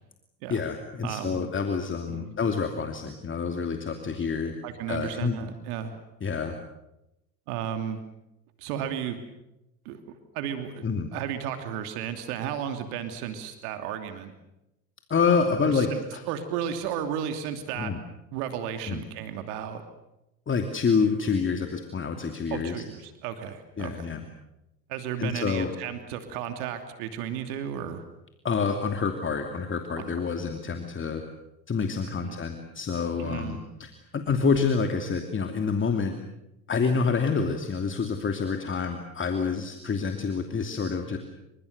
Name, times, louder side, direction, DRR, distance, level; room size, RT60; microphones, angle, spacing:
voice 1, 0.5-4.6 4.9-5.5 6.2-6.6 10.8-11.1 15.1-16.2 17.8-18.0 18.9-19.0 20.5-22.8 23.8-24.2 25.2-25.7 28.4-31.2 31.7-36.1 36.7-41.2, left 5 dB, 25° left, 5 dB, 2.7 m, -27 dB
voice 2, 1.0-1.5 2.1-2.3 4.6-6.0 7.5-8.0 8.6-9.2 9.8-10.8 11.1-14.3 15.6-16.0 16.3-17.9 18.3-19.8 22.5-24.1 24.9-28.0 30.0-30.1 32.2-32.4 33.2-33.6, right 9 dB, 65° right, 7 dB, 2.9 m, -34 dB
29.0 x 25.5 x 6.7 m, 0.90 s
hypercardioid pair, 80°, 50 cm